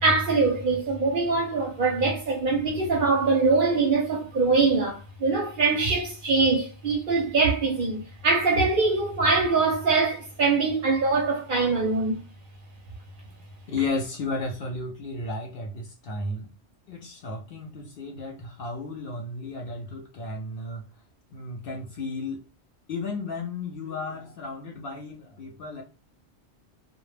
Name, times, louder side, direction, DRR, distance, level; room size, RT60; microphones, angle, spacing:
voice 1, 0.0-12.2, right 3 dB, 55° right, 0.6 m, -23 dB
voice 2, 13.7-16.5 16.9-20.8 21.3-22.4 22.9-25.8, left 3 dB, 60° left, 0.6 m, -33 dB
2.2 x 2.1 x 3.1 m
omnidirectional pair, 1.2 m